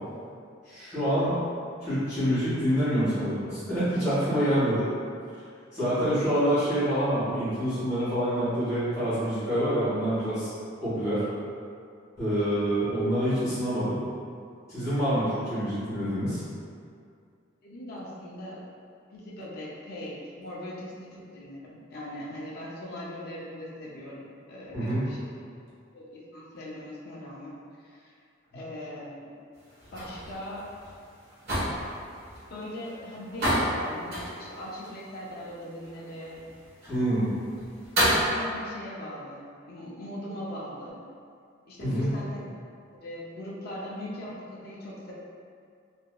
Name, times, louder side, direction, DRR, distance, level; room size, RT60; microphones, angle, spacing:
voice 1, 0.6-1.3 1.8-4.9 5.7-10.5 10.8-11.2 12.2-14.0 14.7-16.4 24.7-25.1 36.9-37.3 41.8-42.1, equal, 15° left, -14 dB, 1.4 m, -26 dB
voice 2, 17.6-18.6 19.1-25.2 25.9-28.1 28.5-29.3 29.9-30.6 32.5-36.4 38.2-41.0 41.7-42.4 43.0-45.1, left 1 dB, 50° left, -5 dB, 0.5 m, -40 dB
ouverture fermeture cage, 29.6-38.3, equal, 55° right, 1.1 m, -31 dB
2.8 x 2.5 x 2.3 m, 2.3 s
head